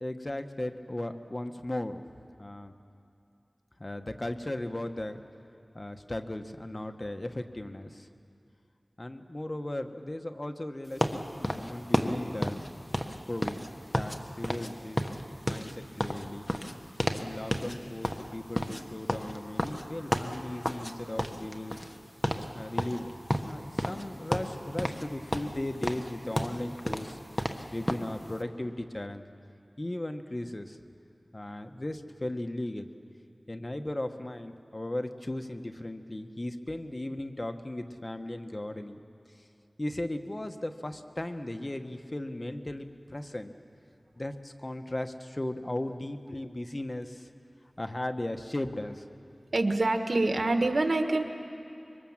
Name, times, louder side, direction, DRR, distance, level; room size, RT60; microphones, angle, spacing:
voice 1, 0.0-2.0 2.4-2.7 3.8-5.2 5.7-8.1 9.0-12.6 13.3-13.7 13.9-15.0 15.5-16.5 17.2-21.8 22.5-27.2 27.7-29.2 29.8-30.8 31.3-32.9 33.5-39.0 39.8-43.5 44.2-47.3 47.8-49.0, left 1 dB, 35° left, 6 dB, 1.2 m, -36 dB
sound 1, 11.0-14.2 14.4-14.7 15.0-17.3 17.5-17.8 18.0-20.9 21.2-22.0 22.2-22.5 22.8-24.0 24.3-25.1 25.3-28.1, equal, 10° left, 1.4 m, -31 dB
voice 2, 49.5-51.2, right 2 dB, 80° right, 6 dB, 1.5 m, -25 dB
25.5 x 23.5 x 7.4 m, 2.6 s
wide cardioid pair, 60°, 0 cm